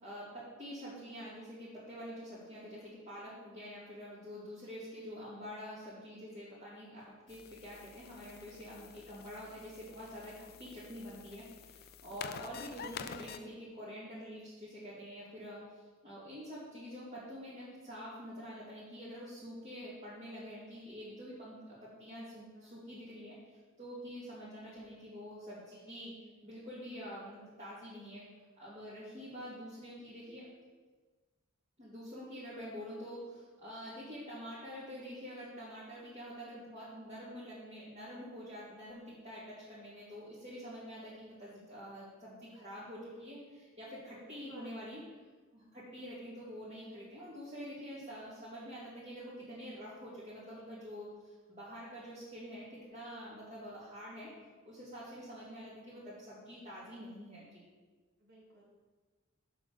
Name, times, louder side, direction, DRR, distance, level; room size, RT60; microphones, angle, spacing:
voice 1, 0.0-15.6 16.0-26.1 26.4-28.2 28.6-30.5 31.8-45.0 45.5-54.3 54.6-57.6, equal, 35° right, -11 dB, 2.6 m, -47 dB
sound 1, 7.3-13.4, left 7 dB, 50° left, 0.4 m, -49 dB
voice 2, 12.1-12.4 22.5-22.9 44.3-44.9 58.2-58.6, right 1 dB, 55° right, -5 dB, 2.8 m, -57 dB
7.6 x 5.0 x 7.1 m, 1.3 s
head